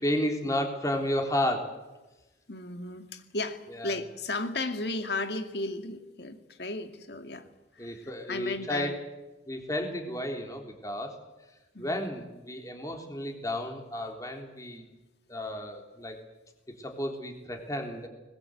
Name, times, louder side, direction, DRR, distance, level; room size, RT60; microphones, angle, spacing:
voice 1, 0.0-1.7 3.7-4.0 7.8-9.0 9.5-11.2 11.8-14.8 15.3-16.2 16.8-18.1, left 1 dB, 20° left, 3 dB, 3.7 m, -32 dB
voice 2, 2.5-7.5 7.8-8.9 11.7-12.2, left 2 dB, 60° left, 7 dB, 2.2 m, -35 dB
23.0 x 21.0 x 8.1 m, 1.1 s
head